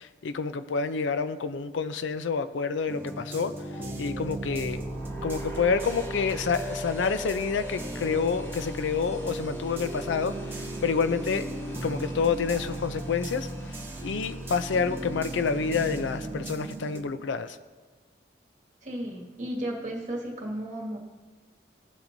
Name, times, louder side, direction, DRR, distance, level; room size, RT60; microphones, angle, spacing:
voice 1, 0.0-3.5 4.0-4.8 5.2-11.5 11.8-13.5 14.0-17.6, left 5 dB, 90° left, 12 dB, 0.4 m, -28 dB
sound 1, 2.9-17.0, right 1 dB, 10° right, 0.8 m, -38 dB
sound 2, 4.1-17.1, right 1 dB, 15° left, 1.1 m, -40 dB
voice 2, 18.8-21.0, right 1 dB, 40° right, -2 dB, 1.9 m, -34 dB
17.0 x 7.2 x 2.6 m, 1.4 s
head